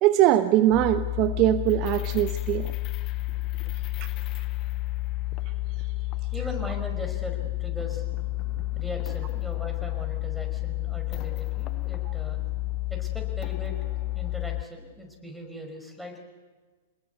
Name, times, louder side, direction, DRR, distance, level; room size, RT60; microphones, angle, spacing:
voice 1, 0.0-2.7, right 13 dB, 40° right, 11 dB, 0.9 m, -21 dB
sound 1, 0.7-14.6, left 18 dB, 35° left, 0.7 m, -31 dB
voice 2, 6.3-8.1 8.7-12.4 12.9-13.8 14.1-16.2, left 1 dB, ahead, 2 dB, 5.2 m, -39 dB
26.0 x 20.5 x 8.2 m, 1.4 s
figure-of-eight pair, 105°, 0 cm